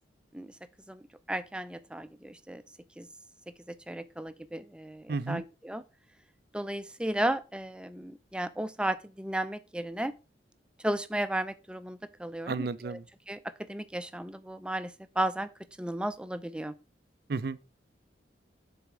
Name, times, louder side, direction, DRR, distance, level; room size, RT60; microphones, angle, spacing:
voice 1, 1.3-2.6 3.0-3.1 3.7-5.8 6.5-10.1 10.8-13.0 13.3-13.4 13.7-15.5 15.8-16.7, right 1 dB, 5° right, 0.5 m, -34 dB
voice 2, 5.1-5.4 12.5-13.0 17.3-17.8, right 4 dB, 60° right, 0.5 m, -33 dB
6.8 x 4.3 x 6.0 m
head